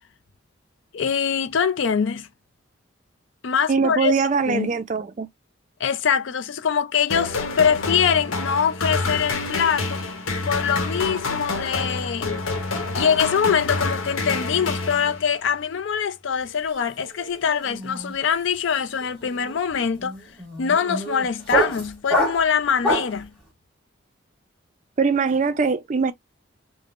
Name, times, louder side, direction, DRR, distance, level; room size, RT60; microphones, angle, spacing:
voice 1, 0.9-2.3 3.4-4.1 4.5-4.7 5.8-10.0 10.5-12.3 12.9-20.2 20.6-23.3, left 7 dB, 65° left, 0.4 m, -23 dB
voice 2, 3.7-5.3 25.0-26.1, right 5 dB, 35° right, 0.4 m, -22 dB
sound 1, 7.1-15.5, left 3 dB, 85° left, 0.9 m, -28 dB
sound 2, 16.4-16.7 17.0-23.2, equal, ahead, 1.3 m, -27 dB
3.5 x 2.0 x 2.4 m
head